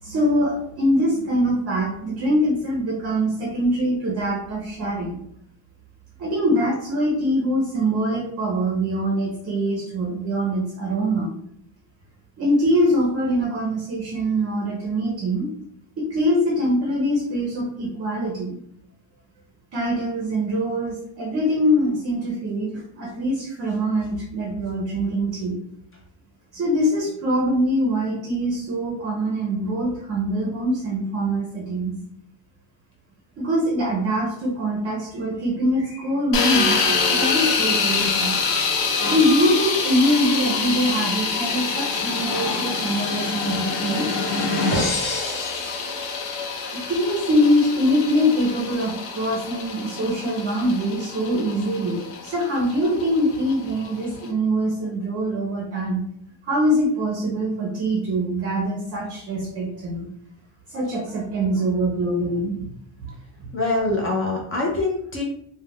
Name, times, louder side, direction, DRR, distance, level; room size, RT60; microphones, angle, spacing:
voice 1, 0.0-5.2 6.2-11.3 12.4-15.5 16.0-18.5 19.7-25.6 26.5-31.9 33.4-38.4 39.1-44.1 46.7-56.0 56.5-60.1 60.7-62.7 63.0-63.1, equal, 35° right, -1 dB, 0.5 m, -23 dB
sound 1, 36.3-54.3, left 5 dB, 85° left, 0.7 m, -26 dB
sound 2, 39.0-46.6, left 2 dB, 65° left, 1.1 m, -30 dB
voice 2, 63.5-65.2, left 2 dB, 30° left, -1 dB, 0.4 m, -24 dB
2.2 x 2.1 x 3.4 m, 0.69 s
cardioid pair, 170°, 42 cm